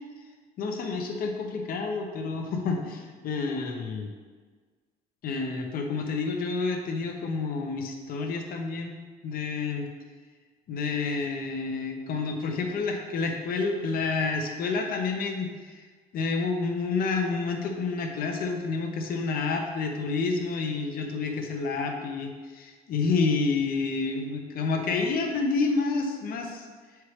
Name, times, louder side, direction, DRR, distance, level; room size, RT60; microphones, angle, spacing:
voice 1, 0.6-4.1 5.2-9.0 9.2-9.9 10.7-15.8 16.1-26.7, left 4 dB, 60° left, 3 dB, 0.9 m, -29 dB
7.1 x 4.6 x 3.2 m, 1.5 s
cardioid pair, 110°, 17 cm